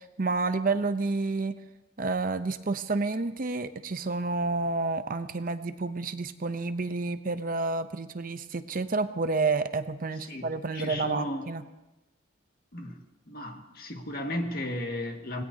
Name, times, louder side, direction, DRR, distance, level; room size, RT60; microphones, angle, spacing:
voice 1, 0.0-1.5 2.0-11.6, right 3 dB, 45° right, 9 dB, 0.7 m, -29 dB
voice 2, 10.3-11.5 12.7-13.0 13.3-15.4, left 1 dB, 50° left, 2 dB, 1.9 m, -35 dB
26.0 x 19.0 x 2.8 m, 1.0 s
head